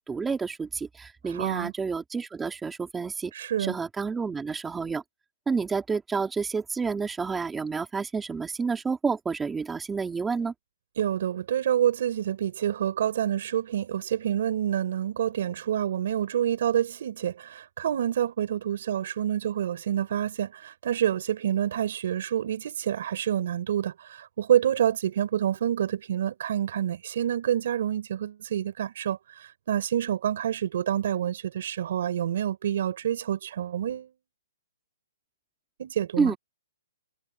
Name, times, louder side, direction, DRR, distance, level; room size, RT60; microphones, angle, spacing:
voice 1, 0.0-3.3 3.6-5.0 5.5-10.5 36.2-36.4, right 5 dB, 5° right, 3.4 m, -29 dB
voice 2, 1.2-1.7 3.3-3.8 11.0-34.1 35.8-36.3, right 10 dB, 50° right, 5.4 m, -27 dB
hypercardioid pair, 170°, 0 cm